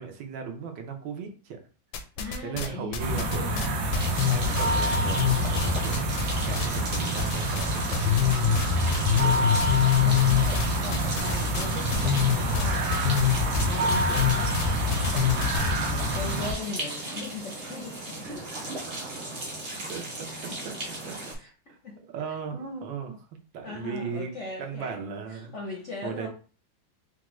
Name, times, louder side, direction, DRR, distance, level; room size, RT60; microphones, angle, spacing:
voice 1, 0.0-1.6 2.4-3.5 4.3-6.1 6.4-8.4 9.1-9.8 18.2-18.4 19.9-20.3 20.6-21.4 21.7-21.8 22.1-23.3 23.5-24.3 24.6-25.5 26.0-26.3, right 6 dB, 75° right, 3 dB, 1.4 m, -37 dB
sound 1, 1.9-2.7 2.9-6.7 6.9-7.7 7.9-15.7, left 9 dB, 85° left, 1.4 m, -25 dB
voice 2, 2.2-3.8 9.7-18.5 20.5-20.6 21.4-21.5 21.8-22.0 23.6-25.0 25.3-26.3, left 3 dB, 60° left, -2 dB, 0.8 m, -39 dB
sound 2, 3.0-16.5, right 1 dB, 90° right, 1.5 m, -27 dB
sound 3, 3.9-21.3, right 2 dB, 40° right, 0.9 m, -36 dB
4.4 x 2.4 x 3.1 m, 0.37 s
omnidirectional pair, 2.1 m